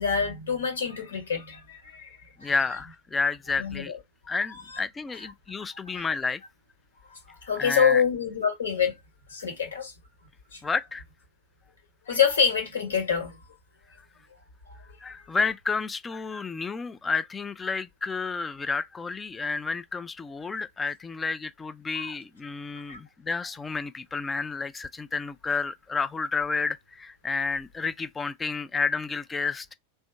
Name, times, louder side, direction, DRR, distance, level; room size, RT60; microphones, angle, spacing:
voice 1, 0.0-2.6 3.6-4.0 5.9-6.0 7.1-9.0 9.3-9.9 10.5-10.6 12.1-13.4 21.9-22.2 22.9-23.0, left 7 dB, 70° left, 1.2 m, -26 dB
voice 2, 2.4-3.9 4.3-6.4 7.6-8.0 10.6-11.0 15.0-29.7, left 4 dB, 15° left, 0.4 m, -30 dB
3.5 x 2.1 x 4.4 m
figure-of-eight pair, 90°, 0 cm